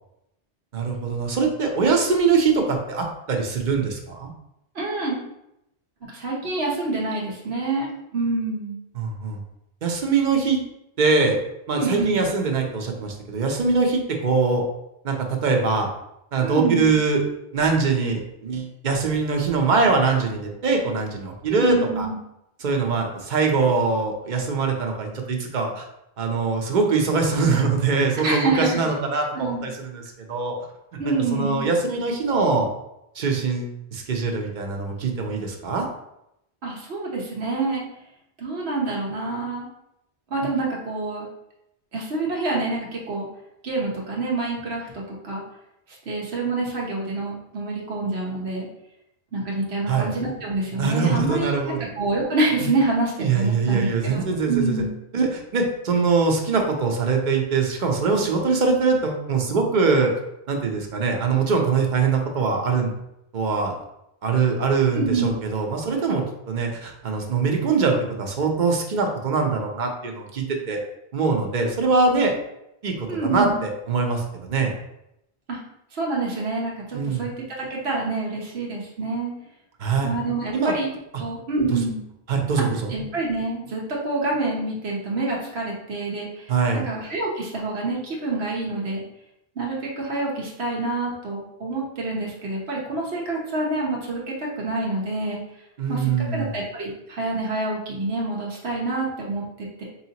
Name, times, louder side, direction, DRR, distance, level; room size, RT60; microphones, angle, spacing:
voice 1, 0.7-4.3 9.0-9.4 9.8-10.6 11.0-11.4 11.7-14.6 15.0-15.9 16.3-17.2 17.5-22.1 22.6-25.8 26.2-30.5 31.0-32.7 33.1-35.9 49.9-50.1 50.8-51.9 53.2-54.8 55.1-60.1 60.5-62.9 63.3-63.7 64.2-70.8 71.1-72.3 72.8-74.7 76.9-77.2 79.8-80.1 80.5-80.7 81.7-81.8 82.3-82.9 86.5-86.8 95.8-96.6, right 4 dB, 55° right, 2 dB, 0.7 m, -23 dB
voice 2, 4.7-5.2 6.0-8.8 11.7-12.3 16.4-17.0 21.5-22.1 28.2-28.8 29.3-29.7 31.0-31.7 36.6-37.8 38.4-39.7 40.3-41.3 41.9-43.3 43.6-45.4 45.9-48.7 49.3-54.9 64.9-65.3 73.1-73.6 75.5-75.6 75.9-79.3 80.0-80.9 81.2-82.0 82.6-89.0 89.6-95.4 95.9-99.8, right 2 dB, 85° right, -3 dB, 1.3 m, -27 dB
4.7 x 2.8 x 2.8 m, 0.83 s
omnidirectional pair, 1.0 m